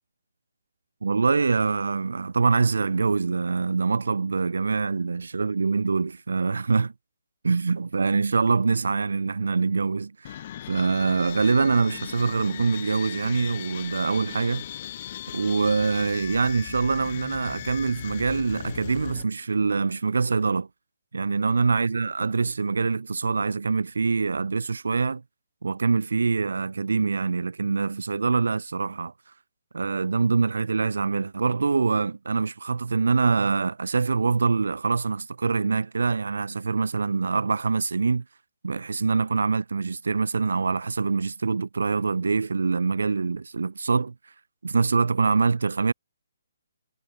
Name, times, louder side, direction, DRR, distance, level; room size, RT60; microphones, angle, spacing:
voice 1, 1.0-6.9 7.4-10.4 10.7-14.6 15.3-20.7 21.1-25.2 25.6-29.1 29.7-38.2 38.6-44.1 44.6-45.9, right 4 dB, 75° right, 0.6 m, -24 dB
sound 1, 10.2-19.2, left 11 dB, 40° left, 2.8 m, -38 dB
figure-of-eight pair, 145°, 0 cm